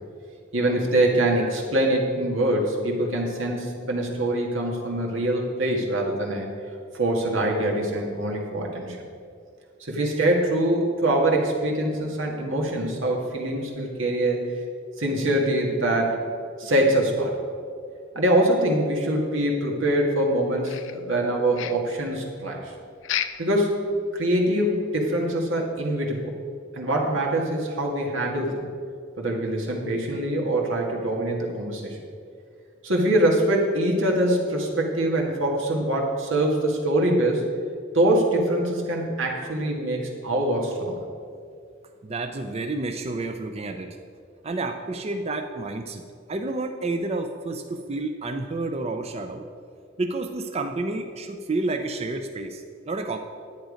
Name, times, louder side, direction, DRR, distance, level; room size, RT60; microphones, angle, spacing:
voice 1, 0.5-6.5 6.9-9.0 9.8-14.5 15.0-16.2 16.6-17.3 18.1-22.7 23.4-23.8 24.1-26.3 26.7-28.6 29.2-32.0 32.8-37.5 37.9-41.0, right 1 dB, 90° right, -1 dB, 1.9 m, -24 dB
sound 1, 20.6-21.3 21.5-22.0 23.0-23.5 23.9-24.0 24.4-24.5 25.0-25.1, left 10 dB, 75° left, 0.5 m, -31 dB
voice 2, 42.0-44.0 44.4-46.0 46.3-49.5 50.0-53.2, right 2 dB, 35° right, 6 dB, 0.5 m, -30 dB
10.5 x 9.0 x 5.1 m, 2.2 s
head